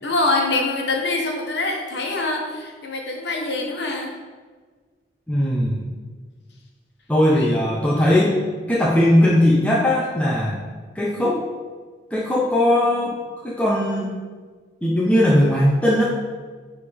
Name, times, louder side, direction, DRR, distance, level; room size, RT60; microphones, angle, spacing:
voice 1, 0.0-4.1 7.3-7.5, left 2 dB, 65° left, 0 dB, 1.1 m, -24 dB
voice 2, 5.3-5.9 7.1-8.4 8.7-10.6 10.9-11.4 12.1-13.1 13.4-14.2 14.8-16.0, left 1 dB, 5° left, -5 dB, 0.6 m, -19 dB
8.9 x 3.5 x 3.5 m, 1.5 s
head